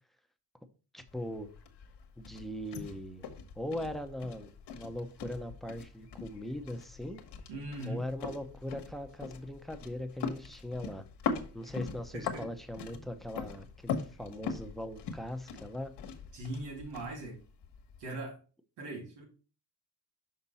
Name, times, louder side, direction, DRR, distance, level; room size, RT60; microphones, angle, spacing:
voice 1, 0.9-1.5 2.2-3.3 3.6-7.2 7.8-11.0 11.5-15.9, left 1 dB, ahead, 0.8 m, -40 dB
sound 1, 1.1-18.1, left 5 dB, 75° left, 1.3 m, -42 dB
voice 2, 7.5-8.1 11.7-11.8 12.1-12.5 16.3-17.4 18.0-18.4 18.8-19.2, right 1 dB, 90° right, 2.7 m, -40 dB
5.9 x 5.6 x 4.2 m
cardioid pair, 115°, 41 cm